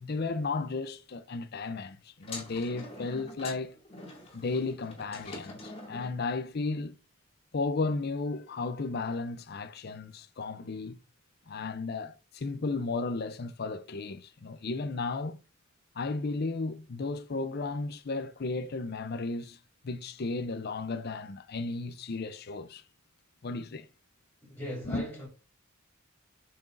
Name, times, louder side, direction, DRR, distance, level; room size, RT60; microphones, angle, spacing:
voice 1, 0.0-3.8 4.3-6.9 7.5-11.0 11.5-15.4 15.9-19.6 19.8-22.8 23.4-23.9 24.9-25.0, left 3 dB, 50° left, 0.6 m, -34 dB
sound 1, 2.2-6.2, left 2 dB, 30° left, 2.4 m, -44 dB
voice 2, 24.4-25.3, left 1 dB, 15° left, 3.7 m, -39 dB
8.7 x 6.0 x 2.6 m
head